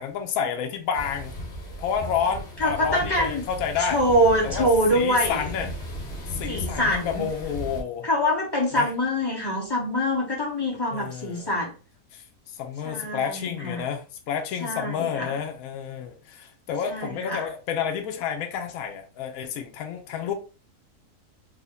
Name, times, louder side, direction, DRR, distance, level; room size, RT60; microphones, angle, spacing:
voice 1, 0.0-1.3 1.8-4.0 4.4-5.7 6.3-8.1 8.7-8.9 10.9-11.6 12.1-20.3, left 7 dB, 70° left, 1.0 m, -30 dB
sound 1, 0.9-7.8, left 1 dB, 55° left, 1.0 m, -36 dB
voice 2, 2.6-3.4 3.8-5.4 6.5-7.3 8.0-11.7 12.8-13.8 14.6-15.3 16.9-17.5, equal, 20° left, 0.9 m, -24 dB
3.5 x 2.1 x 3.8 m
omnidirectional pair, 1.6 m